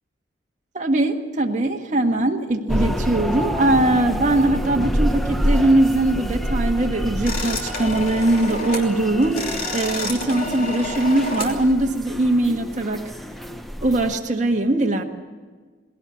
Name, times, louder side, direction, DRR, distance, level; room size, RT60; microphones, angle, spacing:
voice 1, 0.7-9.5 9.7-13.0 13.8-15.0, right 2 dB, 40° right, 1 dB, 1.6 m, -21 dB
sound 1, 2.7-14.2, equal, ahead, 0.8 m, -27 dB
sound 2, 7.2-8.9 9.2-11.6, left 2 dB, 50° left, 3.1 m, -30 dB
19.5 x 17.0 x 8.3 m, 1.4 s
head